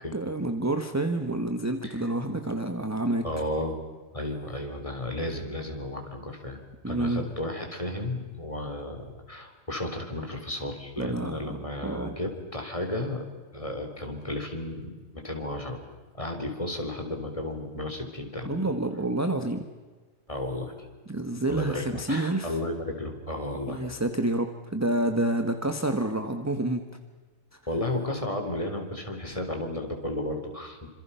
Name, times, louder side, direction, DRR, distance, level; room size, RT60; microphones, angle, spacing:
voice 1, 0.1-3.3 6.8-7.3 11.0-11.6 11.8-12.1 18.4-19.6 21.1-22.5 23.7-26.9, right 2 dB, 10° right, 7 dB, 1.3 m, -28 dB
voice 2, 3.2-3.8 4.1-6.6 6.9-13.3 13.5-15.8 16.1-18.6 20.3-20.9 21.5-23.9 27.7-30.9, left 1 dB, 25° left, 3 dB, 3.8 m, -33 dB
28.0 x 26.5 x 5.7 m, 1.4 s
omnidirectional pair, 1.4 m